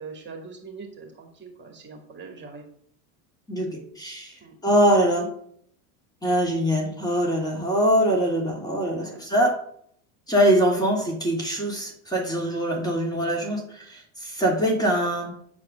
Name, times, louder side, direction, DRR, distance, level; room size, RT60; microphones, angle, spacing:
voice 1, 0.0-2.6 4.4-4.5 9.0-9.2, right 4 dB, 25° right, 3 dB, 2.4 m, -42 dB
voice 2, 3.5-4.4 4.6-5.3 6.2-9.6 10.3-15.4, equal, 10° left, -1 dB, 2.3 m, -23 dB
9.0 x 4.8 x 6.3 m, 0.65 s
supercardioid pair, 130°, 43 cm